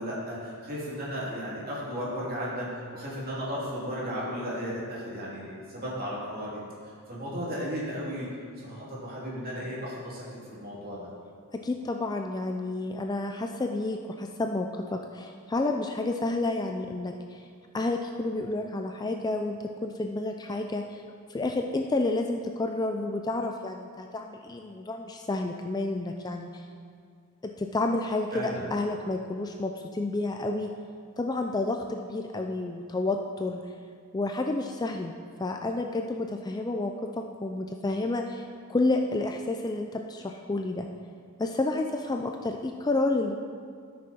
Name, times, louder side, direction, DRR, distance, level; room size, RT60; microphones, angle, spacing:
voice 1, 0.0-6.6 7.1-8.3 8.6-11.1 28.3-28.6, equal, 40° right, -6 dB, 2.9 m, -35 dB
voice 2, 11.5-17.5 17.7-21.0 21.3-26.6 27.4-30.7 31.2-33.6 34.1-35.1 35.4-40.9 41.4-43.4, left 2 dB, 20° left, 4 dB, 0.3 m, -30 dB
13.0 x 6.4 x 4.3 m, 2.1 s
head